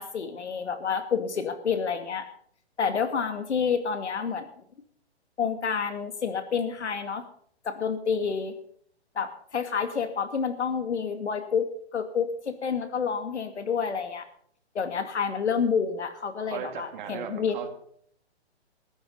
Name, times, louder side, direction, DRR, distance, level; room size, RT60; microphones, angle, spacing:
voice 1, 0.0-2.3 2.8-4.5 5.4-7.2 7.6-8.5 9.2-14.3 14.7-17.6, left 6 dB, 80° left, 8 dB, 2.4 m, -29 dB
voice 2, 16.5-17.7, right 8 dB, 45° right, 7 dB, 2.5 m, -37 dB
14.5 x 11.5 x 5.5 m, 0.62 s
hypercardioid pair, 140°, 33 cm